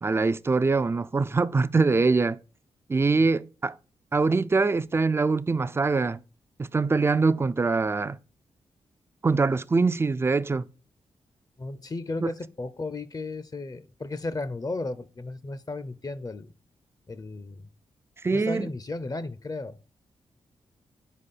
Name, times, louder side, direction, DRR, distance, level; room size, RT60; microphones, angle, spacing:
voice 1, 0.0-2.4 2.9-3.7 4.1-6.2 6.6-8.2 9.2-10.6 12.2-12.3 18.2-18.7, right 4 dB, 20° right, 0.3 m, -23 dB
voice 2, 11.6-16.5 17.1-17.7 18.3-19.8, left 2 dB, 30° left, 0.6 m, -34 dB
4.9 x 4.2 x 5.3 m
supercardioid pair, 45°, 12 cm